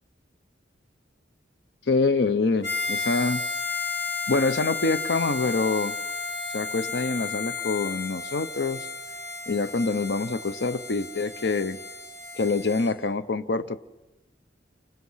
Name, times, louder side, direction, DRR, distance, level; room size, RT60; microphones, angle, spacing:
voice 1, 1.9-3.4 4.3-6.0 6.5-8.9 9.5-11.8 12.3-13.8, left 3 dB, 65° left, 13 dB, 0.8 m, -25 dB
Harmonica, 2.6-12.9, left 4 dB, 85° left, 8.0 m, -33 dB
30.0 x 26.0 x 5.7 m, 1.0 s
head